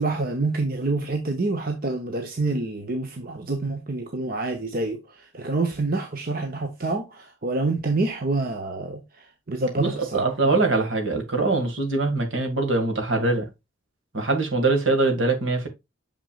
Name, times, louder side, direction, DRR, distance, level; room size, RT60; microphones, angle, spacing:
voice 1, 0.0-5.0 5.3-9.0 9.5-10.3, right 3 dB, 45° right, 0.9 m, -27 dB
voice 2, 9.8-13.5 14.1-15.7, right 3 dB, 70° right, 2.1 m, -23 dB
6.7 x 6.1 x 2.4 m
head